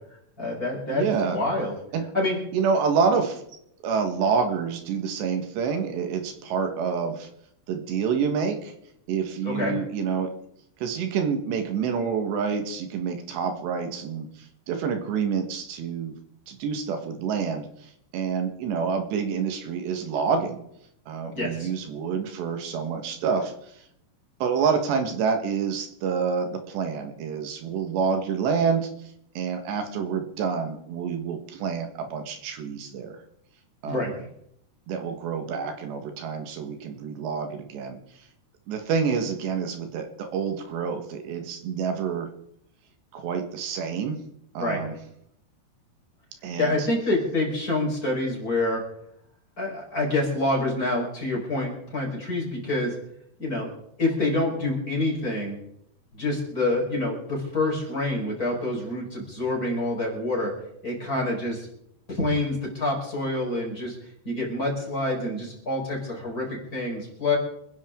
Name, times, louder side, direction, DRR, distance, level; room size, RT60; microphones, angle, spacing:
voice 1, 0.4-1.0 1.3-1.7 2.1-2.4 9.4-9.7 21.3-21.7 33.8-34.1 44.6-44.8 46.6-48.8 49.6-53.0 53.4-53.7 54.0-55.6 56.1-60.5 60.8-61.7 62.1-64.0 64.2-67.4, left 2 dB, 20° left, -2 dB, 4.9 m, -27 dB
voice 2, 0.9-1.4 1.9-2.1 2.5-3.4 3.8-7.3 7.7-8.7 9.1-10.3 10.8-16.1 16.5-17.7 18.1-20.6 21.1-23.5 24.4-28.9 29.4-33.2 33.8-34.1 34.9-38.0 38.7-42.3 43.1-44.2 44.6-45.0 46.4-46.9, right 6 dB, 80° right, 6 dB, 3.8 m, -27 dB
27.5 x 10.5 x 3.8 m, 0.73 s
omnidirectional pair, 4.9 m